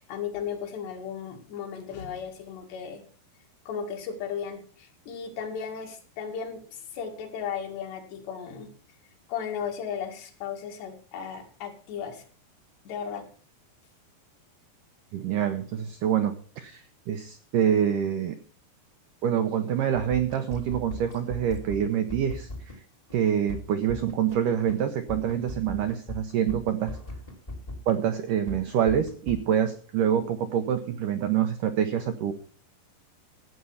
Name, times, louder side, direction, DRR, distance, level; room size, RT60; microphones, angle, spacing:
voice 1, 0.0-3.1 3.7-8.7 9.3-12.2 12.9-13.3, left 7 dB, 75° left, 3 dB, 4.1 m, -35 dB
voice 2, 15.1-16.8 17.1-18.4 19.2-22.5 23.1-27.0 27.9-32.3, right 9 dB, 85° right, 8 dB, 1.8 m, -26 dB
sound 1, 19.9-22.8 23.1-23.2 23.5-24.4 24.7-24.8 25.1-28.0 28.3-29.4, left 2 dB, 20° left, 0.9 m, -38 dB
14.0 x 8.3 x 5.6 m, 0.43 s
omnidirectional pair, 5.0 m